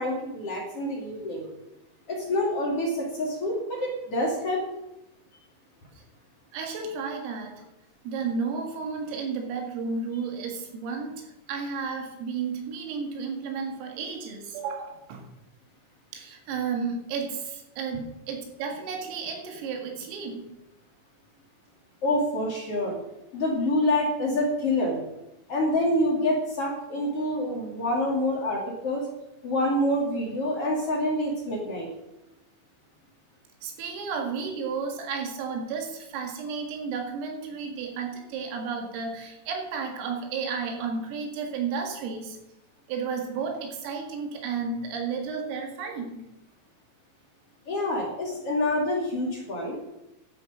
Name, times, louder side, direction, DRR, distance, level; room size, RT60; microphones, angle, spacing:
voice 1, 0.0-1.5 2.1-4.6 22.0-23.0 23.3-25.0 25.5-29.1 29.4-31.9 47.7-49.8, left 1 dB, 40° left, -2 dB, 2.5 m, -27 dB
voice 2, 6.5-7.6 8.0-15.2 16.1-20.5 33.6-42.4 42.9-46.3, right 5 dB, 85° right, 3 dB, 4.7 m, -32 dB
12.5 x 8.9 x 6.2 m, 0.90 s
omnidirectional pair, 5.8 m